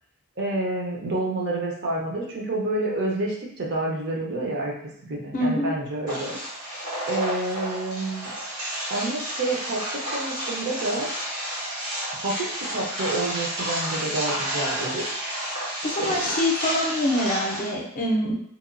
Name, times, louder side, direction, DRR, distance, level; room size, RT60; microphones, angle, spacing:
voice 1, 0.4-4.7 5.1-6.4 6.6-6.7 7.1-8.3 8.9-11.1 12.1-15.3 16.0-16.3, right 2 dB, 50° right, -2 dB, 0.6 m, -29 dB
voice 2, 5.3-5.7 15.8-18.3, left 1 dB, 40° left, -1 dB, 0.5 m, -25 dB
sound 1, 6.1-17.7, right 1 dB, 90° right, 1.2 m, -31 dB
2.9 x 2.2 x 2.5 m, 0.67 s
head